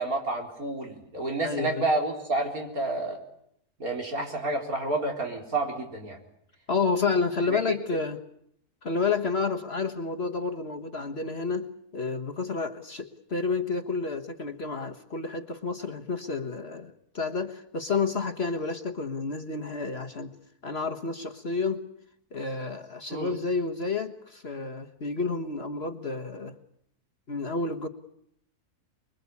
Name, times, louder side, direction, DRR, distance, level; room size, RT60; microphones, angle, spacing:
voice 1, 0.0-3.2 3.8-6.2 7.5-7.6 23.1-23.3, right 2 dB, 60° right, 2 dB, 4.7 m, -29 dB
voice 2, 1.4-1.9 6.7-8.2 8.8-20.3 20.6-21.8 22.3-26.5 27.3-27.9, left 4 dB, 40° left, 6 dB, 1.5 m, -30 dB
25.0 x 23.0 x 8.4 m, 0.72 s
omnidirectional pair, 1.7 m